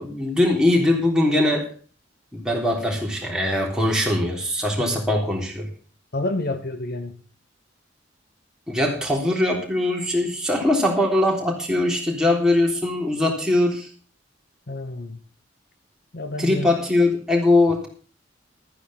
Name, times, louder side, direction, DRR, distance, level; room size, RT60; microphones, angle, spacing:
voice 1, 0.0-1.7 2.3-5.7 8.7-13.9 16.4-17.9, left 1 dB, 5° right, -2 dB, 3.6 m, -21 dB
voice 2, 6.1-7.2 14.7-15.2 16.1-16.7, left 2 dB, 50° left, 9 dB, 1.1 m, -29 dB
13.0 x 9.7 x 5.8 m, 0.39 s
head